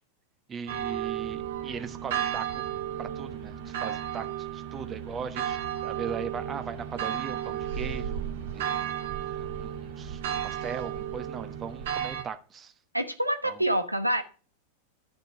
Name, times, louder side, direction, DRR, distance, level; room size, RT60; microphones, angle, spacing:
voice 1, 0.5-2.6 3.0-5.6 5.8-8.9 9.6-12.7 13.4-13.6, right 6 dB, 25° right, 10 dB, 1.1 m, -39 dB
sound 1, 0.7-12.2, right 10 dB, 55° right, 1.9 m, -33 dB
voice 2, 12.9-14.2, right 1 dB, 85° right, 8 dB, 1.1 m, -26 dB
12.0 x 6.6 x 4.8 m, 0.37 s
figure-of-eight pair, 90°, 0 cm